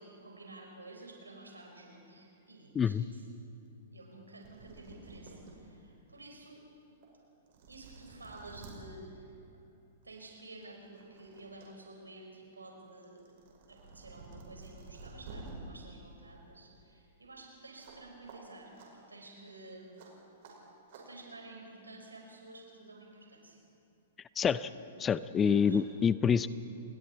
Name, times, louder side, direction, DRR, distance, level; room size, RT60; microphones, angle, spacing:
voice 1, 0.0-3.2 3.9-6.6 7.7-9.6 10.0-13.2 13.7-20.1 20.9-23.6 25.4-25.8, right 2 dB, 85° right, 1 dB, 5.0 m, -51 dB
sound 1, 4.2-4.3 4.4-5.5 6.1-6.2 7.0-7.1 7.5-8.7 10.0-10.2 10.6-11.7 12.0-15.5 17.8-18.0 18.3-18.4 18.7-18.9 20.0-20.1 20.4-20.5 20.9-21.0, right 4 dB, 55° right, 5.7 m, -51 dB
voice 2, 24.4-24.7 25.0-26.5, left 7 dB, 20° left, 16 dB, 0.5 m, -27 dB
28.5 x 21.0 x 4.5 m, 2.6 s
figure-of-eight pair, 110°, 0 cm